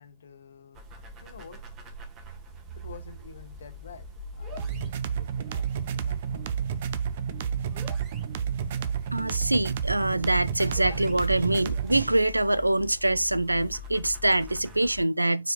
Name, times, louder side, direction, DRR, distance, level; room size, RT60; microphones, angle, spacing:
voice 1, 0.0-1.6 2.1-6.5, left 7 dB, 65° left, 1.2 m, -50 dB
sound 1, 0.7-15.0, left 2 dB, 30° right, 1.7 m, -43 dB
sound 2, 4.6-12.1, right 8 dB, 50° right, 0.7 m, -30 dB
voice 2, 9.1-15.5, right 1 dB, 85° right, 0.4 m, -24 dB
8.7 x 4.8 x 2.3 m
figure-of-eight pair, 105°, 0 cm